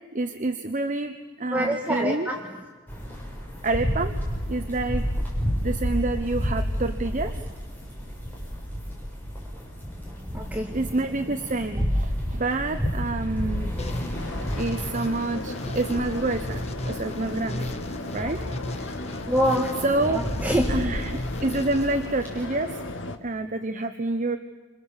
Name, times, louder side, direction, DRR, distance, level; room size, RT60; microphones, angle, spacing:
voice 1, 0.1-2.3 3.6-4.1 4.5-5.0 5.6-7.3 10.7-13.7 14.5-17.7 18.1-18.4 18.8-19.0 19.8-20.2 20.7-22.8 23.2-24.4, right 2 dB, 40° right, 7 dB, 0.9 m, -28 dB
voice 2, 1.5-2.4 9.9-10.9 19.3-20.8, equal, 10° right, 0 dB, 1.9 m, -26 dB
sound 1, 2.9-22.5, equal, 10° left, 7.1 m, -31 dB
sound 2, 13.8-22.6, left 1 dB, 35° left, 1.2 m, -35 dB
sound 3, 14.1-23.2, left 2 dB, 80° left, 1.6 m, -37 dB
29.0 x 26.5 x 7.3 m, 1.3 s
head